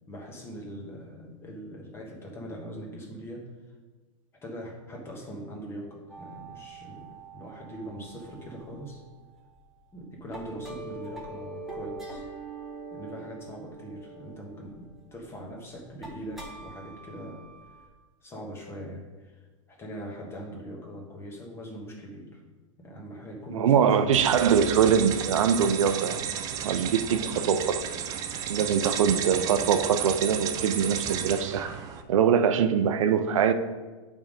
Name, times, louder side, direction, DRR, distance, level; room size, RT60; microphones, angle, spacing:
voice 1, 0.1-3.5 4.4-9.0 9.9-12.2 12.9-17.4 18.2-19.4 19.7-22.4 22.8-24.2, equal, 15° left, 1.3 m, -41 dB
sound 1, 6.1-9.6 10.0-17.9, right 3 dB, ahead, 1.0 m, -44 dB
voice 2, 23.5-26.2 26.6-27.8 28.5-31.6 32.1-33.5, right 7 dB, 85° right, 0.6 m, -23 dB
sound 2, 24.1-32.0, right 9 dB, 20° right, 0.4 m, -33 dB
8.9 x 3.6 x 5.1 m
supercardioid pair, 160°, 16 cm